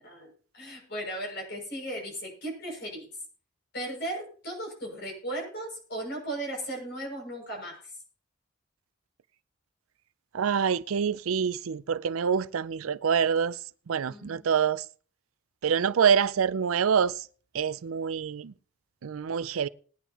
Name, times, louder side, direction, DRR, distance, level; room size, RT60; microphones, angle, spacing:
voice 1, 0.0-3.1 3.7-7.8 14.1-14.5, right 1 dB, 50° left, 6.6 m, -36 dB
voice 2, 10.3-13.5 13.9-14.8 15.6-17.1 17.5-18.5 19.0-19.7, right 7 dB, 90° right, 0.5 m, -26 dB
20.0 x 10.0 x 2.9 m
head